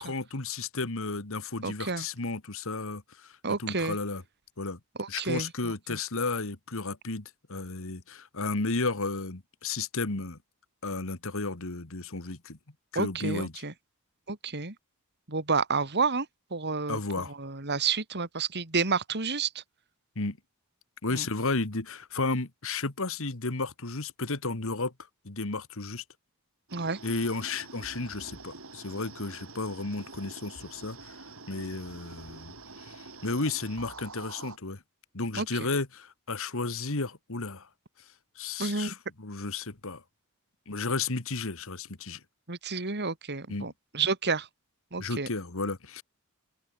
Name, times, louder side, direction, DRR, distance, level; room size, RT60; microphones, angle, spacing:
voice 1, 0.0-4.2 4.6-4.8 5.1-10.4 10.8-12.6 12.9-13.6 16.9-17.3 20.2-20.4 21.0-24.9 25.2-26.0 27.0-31.2 31.5-32.5 32.8-34.8 35.1-37.7 38.4-40.0 40.7-42.2 43.5-43.7 45.0-46.0, left 3 dB, 65° left, 2.0 m, -33 dB
voice 2, 1.6-2.0 3.4-4.0 5.0-5.5 5.9-6.0 12.9-13.7 14.3-14.7 15.3-16.3 16.5-17.0 17.4-19.6 21.1-21.2 26.7-27.0 35.3-35.5 38.6-38.9 42.5-44.5 44.9-45.3, right 4 dB, 50° right, 2.7 m, -30 dB
sound 1, 26.7-34.6, right 3 dB, 65° right, 7.5 m, -46 dB
open air
head